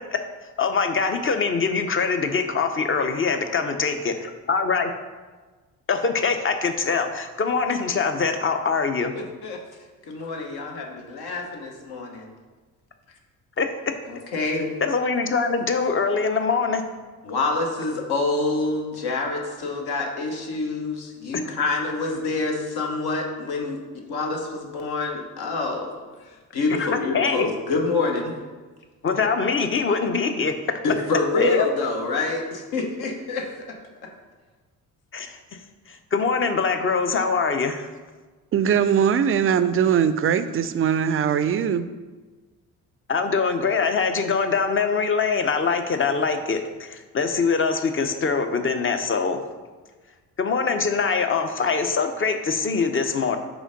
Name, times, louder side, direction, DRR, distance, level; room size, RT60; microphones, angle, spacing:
voice 1, 0.1-4.9 5.9-9.1 13.6-13.7 14.8-16.8 21.3-21.4 26.8-26.9 27.1-27.5 29.0-30.8 31.4-31.7 35.1-35.4 35.9-37.9 43.1-49.4 50.4-53.4, left 5 dB, 30° left, 7 dB, 0.7 m, -23 dB
voice 2, 10.0-12.3 14.1-14.8 17.2-23.8 24.1-26.0 26.5-28.3 30.8-33.5, left 3 dB, 60° left, 1 dB, 1.2 m, -26 dB
voice 3, 38.5-41.9, right 8 dB, 35° right, 12 dB, 0.4 m, -21 dB
5.0 x 3.7 x 5.2 m, 1.3 s
hypercardioid pair, 55°, 42 cm